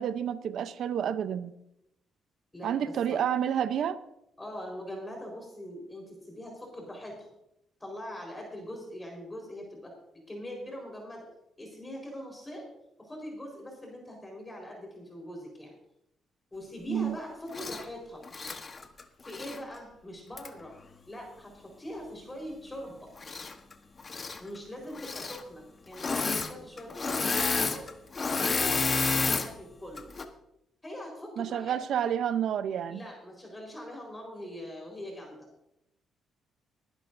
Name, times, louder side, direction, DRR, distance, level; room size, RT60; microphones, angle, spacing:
voice 1, 0.0-1.5 2.6-4.0 16.9-17.2 31.4-33.0, right 9 dB, 70° right, 0.7 m, -29 dB
voice 2, 2.5-3.2 4.4-7.3 7.8-9.9 10.3-11.2 11.6-12.7 13.0-15.8 16.5-18.2 19.2-20.7 21.1-23.1 24.4-27.8 28.2-30.1 30.8-31.8 32.9-35.3, equal, 15° left, 4.4 m, -42 dB
Engine / Mechanisms, 17.5-17.8 18.3-19.6 20.4-20.5 23.2-23.7 24.0-24.4 24.9-25.4 25.9-26.5 26.8-29.5 30.0-30.2, left 4 dB, 35° left, 1.2 m, -30 dB
20.5 x 11.0 x 2.7 m
cardioid pair, 90°, 0 cm